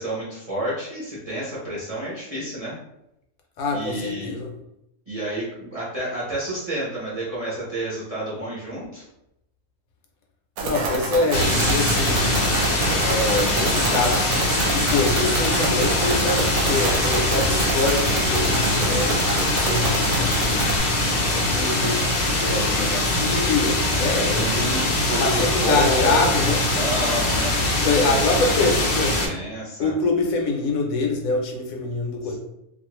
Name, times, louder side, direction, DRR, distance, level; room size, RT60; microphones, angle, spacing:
voice 1, 0.0-2.7 3.7-4.4 5.1-9.0 24.4-27.5 28.0-29.9 32.2-32.3, right 1 dB, 35° right, -7 dB, 0.6 m, -30 dB
voice 2, 3.6-4.5 10.6-12.5 13.0-19.1 19.5-20.7 21.2-22.1 22.4-26.6 27.8-29.2 29.8-32.3, left 3 dB, 75° left, 2 dB, 1.0 m, -25 dB
sound 1, 10.6-20.8, right 3 dB, 75° right, 1.0 m, -27 dB
sound 2, 11.3-29.3, left 1 dB, 55° left, 0.7 m, -22 dB
2.5 x 2.3 x 3.0 m, 0.84 s
omnidirectional pair, 1.5 m